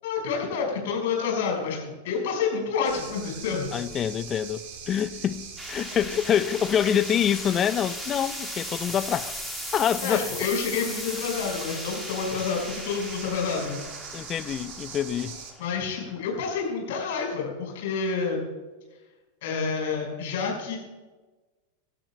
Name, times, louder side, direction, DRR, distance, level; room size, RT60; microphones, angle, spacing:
voice 1, 0.0-3.7 10.0-13.8 15.6-18.4 19.4-20.8, left 5 dB, 55° left, 5.4 m, -28 dB
sound 1, 2.8-15.5, right 6 dB, 45° right, 1.9 m, -41 dB
voice 2, 3.7-9.3 9.7-10.3 14.1-15.4, left 9 dB, 25° left, 0.5 m, -26 dB
sound 2, 5.6-16.7, left 1 dB, ahead, 1.9 m, -38 dB
25.5 x 12.5 x 2.3 m
figure-of-eight pair, 90°, 0 cm